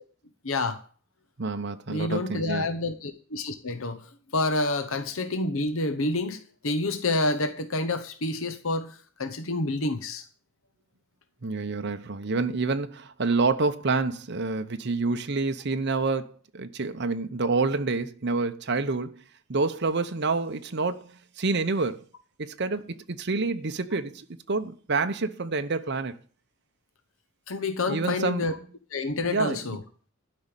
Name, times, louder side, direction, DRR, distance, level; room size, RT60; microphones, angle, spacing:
voice 1, 0.4-0.8 1.9-10.2 27.5-28.5 28.9-29.8, left 2 dB, 70° left, 1.0 m, -28 dB
voice 2, 1.4-2.7 11.4-19.2 19.5-22.0 22.4-26.2 27.9-28.6 29.3-29.6, right 3 dB, 50° right, 0.8 m, -28 dB
12.0 x 5.4 x 9.0 m
head